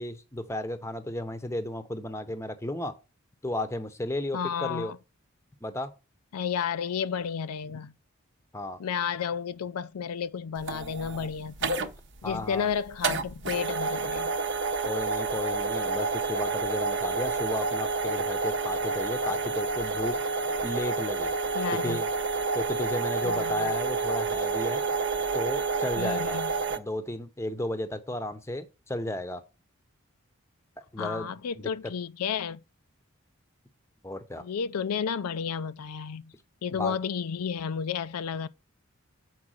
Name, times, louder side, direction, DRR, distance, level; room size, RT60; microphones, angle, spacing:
voice 1, 0.0-2.9 3.4-4.9 5.6-5.9 8.5-8.8 12.2-12.7 14.8-20.2 20.6-21.3 21.8-22.1 22.5-24.8 25.3-26.4 26.8-29.4 30.9-31.3 31.5-31.7 34.0-34.4 36.7-37.0, left 1 dB, 10° left, 0.7 m, -33 dB
voice 2, 4.3-5.0 6.3-7.9 8.8-11.8 12.2-14.3 21.5-22.0 23.2-23.7 26.0-26.5 31.0-32.6 34.4-36.3 36.6-38.5, left 7 dB, 90° left, 0.4 m, -32 dB
sound 1, 10.6-26.8, right 4 dB, 55° right, 0.8 m, -29 dB
7.3 x 4.7 x 6.4 m
head